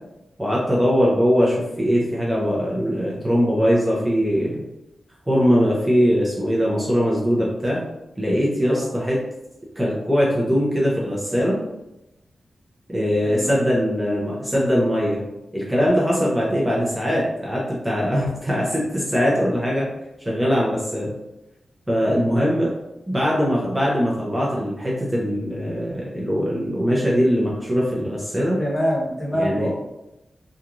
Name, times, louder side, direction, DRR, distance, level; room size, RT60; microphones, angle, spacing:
voice 1, 0.4-4.6 5.3-7.8 8.2-9.2 9.8-11.6 12.9-15.2 15.5-19.9 20.3-21.1 21.9-22.7 23.1-28.6 29.3-29.7, equal, 10° right, -5 dB, 0.5 m, -21 dB
voice 2, 28.6-29.7, equal, 25° left, -4 dB, 0.8 m, -25 dB
2.9 x 2.4 x 2.4 m, 0.93 s
wide cardioid pair, 155°, 0 cm